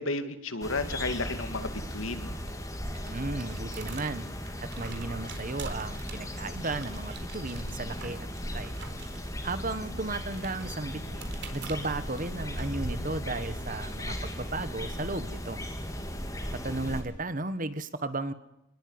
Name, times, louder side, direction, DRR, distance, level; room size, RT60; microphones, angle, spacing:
voice 1, 0.0-2.3, left 2 dB, 70° left, 9 dB, 2.5 m, -33 dB
sound 1, 0.6-17.0, equal, 15° left, 3.5 m, -37 dB
sound 2, 2.2-13.8, right 6 dB, 55° right, 4.1 m, -49 dB
voice 2, 3.0-4.3 4.6-8.7 9.4-15.6 16.5-18.3, right 2 dB, 40° right, 12 dB, 1.6 m, -35 dB
28.0 x 20.5 x 9.8 m, 0.83 s
head